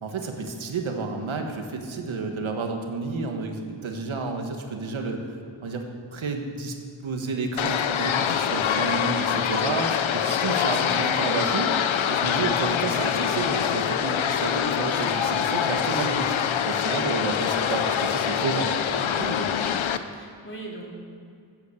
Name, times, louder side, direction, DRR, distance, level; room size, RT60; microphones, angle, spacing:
voice 1, 0.0-5.8 6.1-6.7 7.0-11.7 12.1-16.4 16.6-18.7 19.0-19.5, right 3 dB, 85° right, 3 dB, 1.8 m, -30 dB
sound 1, 7.6-20.0, left 8 dB, 85° left, 0.8 m, -25 dB
voice 2, 16.8-17.3 20.1-20.9, right 1 dB, 25° left, -2 dB, 3.4 m, -41 dB
15.0 x 8.8 x 7.0 m, 2.4 s
cardioid pair, 70°, 46 cm